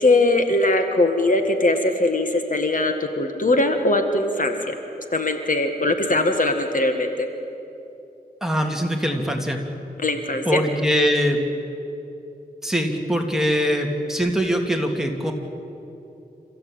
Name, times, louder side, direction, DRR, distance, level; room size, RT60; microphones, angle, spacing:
voice 1, 0.0-4.7 5.1-7.3 10.0-10.6, left 2 dB, 55° left, 5 dB, 1.8 m, -21 dB
voice 2, 8.4-9.6 10.5-11.4 12.6-15.3, equal, 5° right, 2 dB, 2.7 m, -22 dB
28.0 x 15.0 x 8.8 m, 2.8 s
wide cardioid pair, 70°, 16 cm